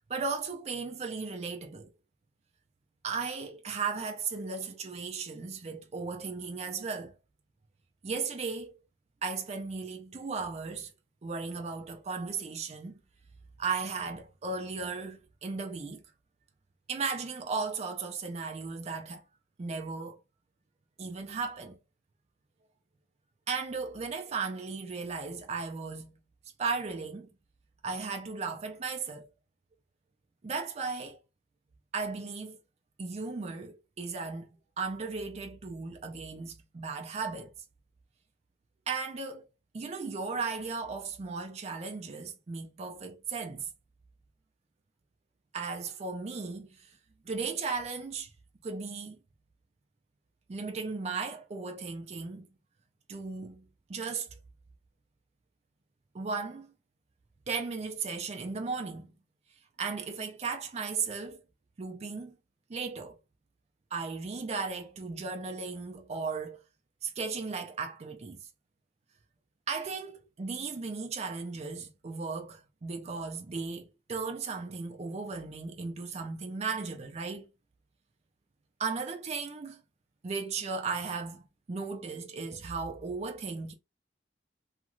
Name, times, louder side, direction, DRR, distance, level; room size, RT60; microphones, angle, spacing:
voice 1, 0.1-1.9 3.0-7.1 8.0-8.7 9.2-10.9 11.2-13.0 13.6-16.0 16.9-19.2 19.6-20.2 21.0-21.8 23.5-26.1 26.6-27.3 27.8-29.3 30.4-31.2 31.9-32.6 33.0-34.5 34.8-37.5 38.9-39.5 39.7-43.7 45.5-47.0 47.2-48.3 48.6-49.2 50.5-52.5 53.1-53.6 53.9-54.3 56.1-56.7 57.5-59.1 59.8-61.4 61.8-62.4 62.7-63.2 63.9-66.6 67.0-68.4 69.7-77.5 78.8-79.8 80.2-83.7, right 4 dB, 35° right, 0.4 m, -36 dB
2.9 x 2.3 x 2.5 m
head